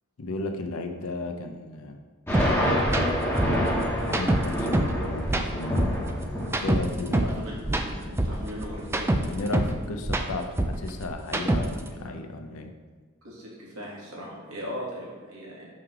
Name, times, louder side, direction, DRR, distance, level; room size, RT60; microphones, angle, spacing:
voice 1, 0.2-2.0 3.9-5.9 6.5-7.3 9.2-12.7, left 2 dB, 75° left, 5 dB, 0.6 m, -34 dB
sound 1, 2.3-9.6, equal, 10° left, 1.2 m, -28 dB
sound 2, 2.3-2.5 2.8-3.0 3.4-5.0 5.2-7.4 7.6-9.8 10.0-11.9, right 1 dB, 10° right, 0.3 m, -25 dB
voice 2, 7.2-9.1 11.9-12.2 13.2-15.7, equal, 70° right, -4 dB, 1.8 m, -38 dB
5.6 x 3.3 x 5.8 m, 1.5 s
head